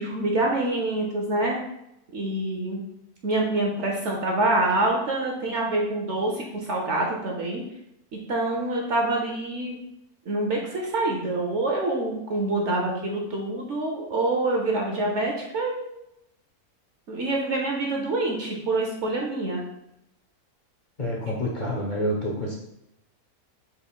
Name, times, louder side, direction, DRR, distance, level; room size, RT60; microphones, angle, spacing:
voice 1, 0.0-1.6 2.1-2.8 3.2-7.6 8.1-9.8 10.3-15.9 17.1-19.6, right 2 dB, 60° right, 0 dB, 0.9 m, -26 dB
voice 2, 21.0-22.5, equal, 40° left, -3 dB, 0.9 m, -28 dB
5.3 x 4.4 x 2.2 m, 0.84 s
omnidirectional pair, 1.6 m